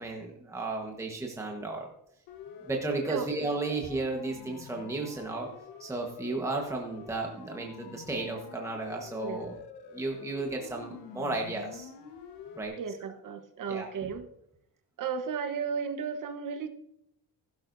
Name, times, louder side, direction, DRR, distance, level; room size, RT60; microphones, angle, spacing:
voice 1, 0.0-1.9 2.6-5.5 5.8-9.6 9.9-11.9 12.6-12.7 13.1-13.2 13.7-14.1, right 2 dB, 5° right, 0 dB, 1.2 m, -34 dB
Siren, 2.3-12.6, left 6 dB, 70° left, 1.3 m, -48 dB
voice 2, 12.8-14.2 15.0-16.7, right 6 dB, 50° right, 7 dB, 1.2 m, -34 dB
16.0 x 12.0 x 2.7 m, 0.76 s
cardioid pair, 175°, 41 cm